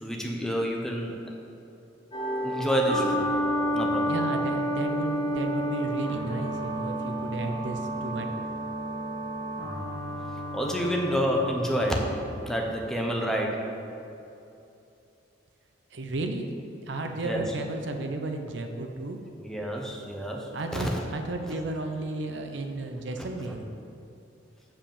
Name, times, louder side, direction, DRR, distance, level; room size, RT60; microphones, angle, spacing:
voice 1, 0.0-1.1 2.4-3.3 3.7-4.1 10.5-12.1 12.4-13.7 17.2-17.5 19.4-21.0 23.2-23.3, equal, 5° left, 0 dB, 1.0 m, -28 dB
sound 1, 2.1-13.1, equal, 30° left, 2.2 m, -31 dB
voice 2, 4.1-8.3 15.9-16.5 16.9-19.2 20.5-23.6, right 2 dB, 80° right, 4 dB, 0.7 m, -33 dB
7.3 x 5.2 x 7.2 m, 2.7 s
head